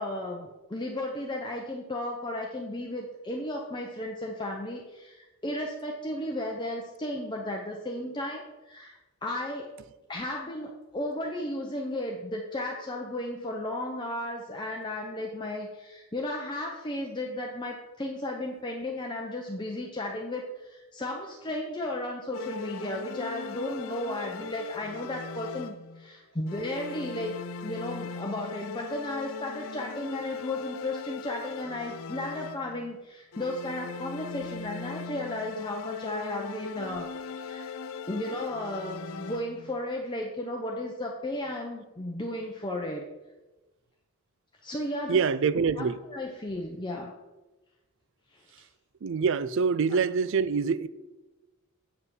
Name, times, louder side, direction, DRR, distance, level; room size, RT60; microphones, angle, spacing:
voice 1, 0.0-9.7 10.1-27.3 27.6-37.1 37.4-37.7 38.1-43.1 44.6-45.2 46.1-47.1 48.3-48.4, left 1 dB, 20° left, 0.7 m, -34 dB
sound 1, 22.3-26.1 26.5-32.9 33.3-39.8, left 5 dB, 65° left, 0.5 m, -39 dB
voice 2, 45.1-46.0 49.0-50.9, right 5 dB, 55° right, 0.4 m, -25 dB
8.0 x 5.5 x 6.2 m
head